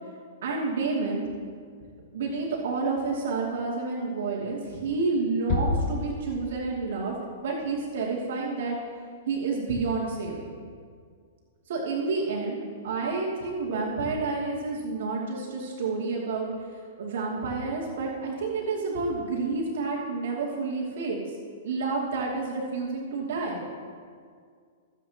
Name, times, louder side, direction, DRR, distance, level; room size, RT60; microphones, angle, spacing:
voice 1, 0.4-1.5 2.1-7.1 7.4-8.8 9.3-10.5 11.7-21.4 21.6-23.6, right 3 dB, 70° right, -4 dB, 2.6 m, -29 dB
sound 1, 5.5-6.9, left 3 dB, 45° left, 1.8 m, -29 dB
25.0 x 8.4 x 3.0 m, 2.1 s
hypercardioid pair, 140°, 0 cm